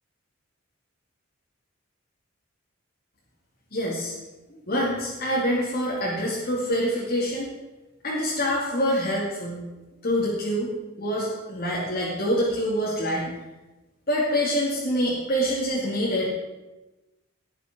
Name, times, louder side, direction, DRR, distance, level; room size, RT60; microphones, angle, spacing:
voice 1, 3.7-4.1 4.5-7.5 8.0-9.6 10.0-10.7 11.0-13.3 14.1-16.3, equal, 45° left, -5 dB, 2.5 m, -26 dB
19.0 x 6.7 x 6.1 m, 1.1 s
head